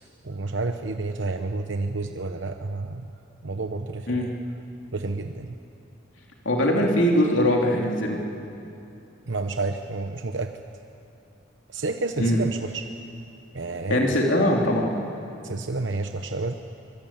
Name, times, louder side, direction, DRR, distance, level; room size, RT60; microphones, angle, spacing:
voice 1, 0.2-3.1 3.4-4.3 4.9-5.5 9.3-10.6 11.7-12.9 13.5-14.2 15.4-16.5, right 3 dB, 65° right, 6 dB, 0.9 m, -30 dB
voice 2, 6.4-8.2 12.2-12.4 13.9-14.9, left 1 dB, 70° left, -1 dB, 2.9 m, -21 dB
24.5 x 22.5 x 8.8 m, 2.7 s
head